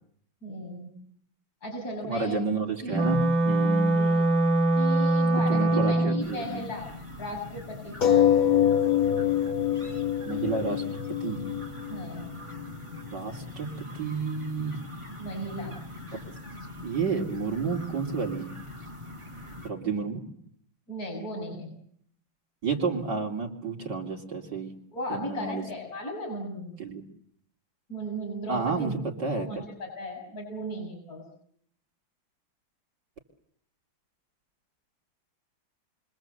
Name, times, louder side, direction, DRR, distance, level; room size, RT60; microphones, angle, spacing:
voice 1, 0.4-0.9 1.6-2.4 2.8-3.3 3.5-4.3 4.8-6.9 7.2-8.5 11.9-12.3 15.2-15.8 20.9-21.7 24.9-26.8 27.9-29.0 29.3-31.2, equal, 45° left, 0 dB, 6.8 m, -36 dB
voice 2, 2.0-3.9 5.5-6.6 10.3-10.8 11.2-11.4 13.1-14.8 16.8-18.5 19.6-20.2 22.6-24.7 25.1-25.6 26.8-27.0 28.5-28.9 29.2-29.6, right 4 dB, 55° right, 1 dB, 3.8 m, -30 dB
Wind instrument woodwind instrument, 2.9-6.3, right 2 dB, 85° right, 3.0 m, -23 dB
sound 1, 6.2-19.7, left 1 dB, 15° right, 7.0 m, -42 dB
sound 2, 8.0-13.0 13.8-13.9 14.2-14.3, left 10 dB, 75° left, 2.7 m, -25 dB
29.0 x 25.0 x 8.0 m, 0.67 s
omnidirectional pair, 2.2 m